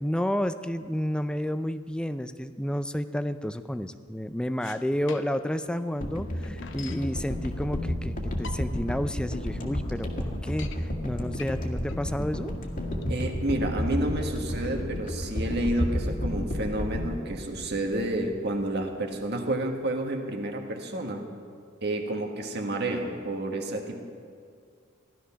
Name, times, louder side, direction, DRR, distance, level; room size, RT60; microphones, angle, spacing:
voice 1, 0.0-12.5, equal, 5° left, 11 dB, 0.4 m, -31 dB
sound 1, 4.6-5.6 5.9-6.0 6.2-7.1 7.8-7.9 8.3-8.9 9.4-9.5 9.8-9.9 10.2-10.8 11.3-14.2, left 6 dB, 65° left, 0.8 m, -45 dB
sound 2, 6.0-18.3 18.6-18.8, left 1 dB, 45° left, 1.8 m, -32 dB
voice 2, 13.1-21.2 21.8-24.0, right 1 dB, 55° right, 3 dB, 1.6 m, -30 dB
16.0 x 12.5 x 5.7 m, 2.2 s
head